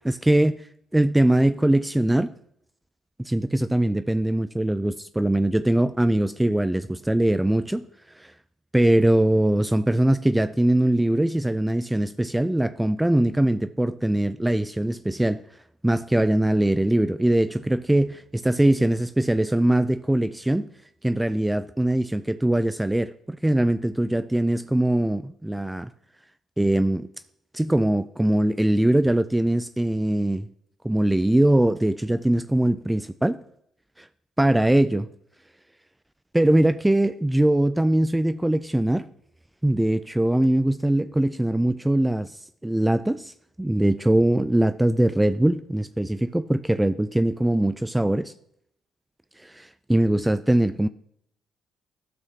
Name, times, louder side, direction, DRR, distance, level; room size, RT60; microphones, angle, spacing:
voice 1, 0.0-0.7 0.9-2.3 3.2-7.9 8.2-8.3 8.7-15.4 15.8-20.7 21.0-25.9 26.6-27.1 27.5-30.5 30.8-33.4 34.0-34.1 34.4-35.1 36.3-39.1 39.6-42.4 42.6-43.3 43.6-48.3 49.4-50.9, right 1 dB, 10° right, 0.3 m, -22 dB
12.5 x 6.0 x 2.8 m
supercardioid pair, 60°, 0 cm